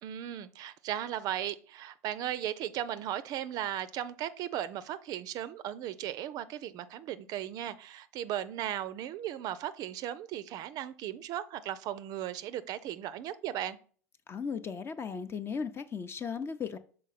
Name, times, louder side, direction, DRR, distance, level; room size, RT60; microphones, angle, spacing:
voice 1, 0.0-13.8, right 11 dB, 45° right, 0.5 m, -36 dB
voice 2, 14.3-16.8, left 6 dB, 30° left, 0.6 m, -36 dB
6.2 x 4.2 x 4.1 m
hypercardioid pair, 80°, 9 cm